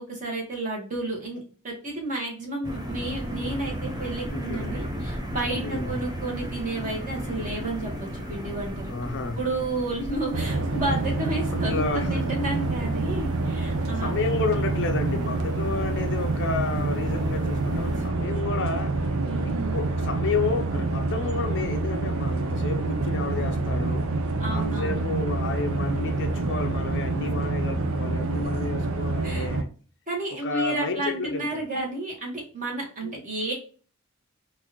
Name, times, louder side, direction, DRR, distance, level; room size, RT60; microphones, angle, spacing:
voice 1, 0.0-8.9 9.3-14.1 19.2-19.9 24.4-25.0 29.2-29.5 30.1-33.5, right 2 dB, 35° right, 1.4 m, -31 dB
sound 1, 2.6-18.1, equal, 20° right, 0.6 m, -35 dB
voice 2, 4.3-4.8 5.6-6.0 8.9-9.4 11.5-12.2 14.0-19.0 19.7-24.1 24.5-29.7 30.3-31.6 33.0-33.2, left 4 dB, 55° left, 0.5 m, -31 dB
sound 2, 10.3-29.6, right 2 dB, 70° right, 0.6 m, -27 dB
3.9 x 2.5 x 2.9 m
head